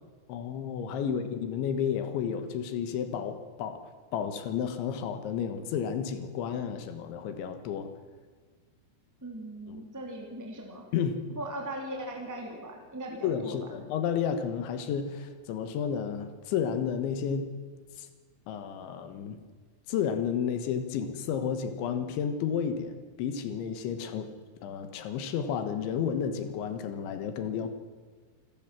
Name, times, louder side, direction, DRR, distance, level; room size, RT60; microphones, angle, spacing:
voice 1, 0.3-3.8 4.1-7.9 9.7-9.8 10.9-11.2 13.2-17.5 18.0-18.1 18.5-19.4 19.9-24.3 24.6-27.7, left 7 dB, 70° left, 9 dB, 3.5 m, -32 dB
voice 2, 9.2-10.8 11.3-13.6, right 1 dB, 5° right, 0 dB, 1.4 m, -39 dB
27.0 x 14.5 x 7.5 m, 1.5 s
omnidirectional pair, 5.9 m